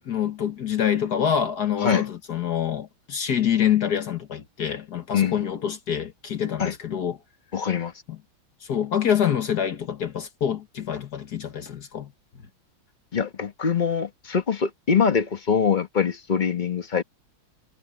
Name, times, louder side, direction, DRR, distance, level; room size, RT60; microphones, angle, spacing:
voice 1, 0.0-7.2 8.6-12.1, left 9 dB, 55° left, 1.7 m, -26 dB
voice 2, 5.1-5.5 6.6-6.7 7.5-7.9 13.1-17.0, left 6 dB, 30° left, 0.9 m, -23 dB
omnidirectional pair, 2.3 m